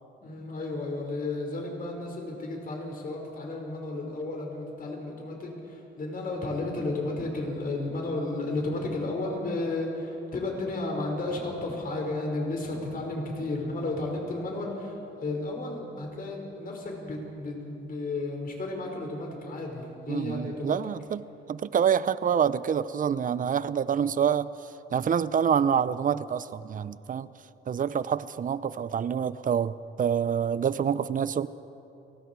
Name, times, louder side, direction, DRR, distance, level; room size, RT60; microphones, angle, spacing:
voice 1, 0.2-20.8, left 2 dB, 45° left, 0 dB, 5.3 m, -33 dB
voice 2, 20.1-21.2 21.5-24.5 24.9-27.3 27.7-31.5, right 8 dB, 45° right, 16 dB, 0.7 m, -27 dB
29.5 x 19.0 x 4.7 m, 2.9 s
cardioid pair, 90°, 20 cm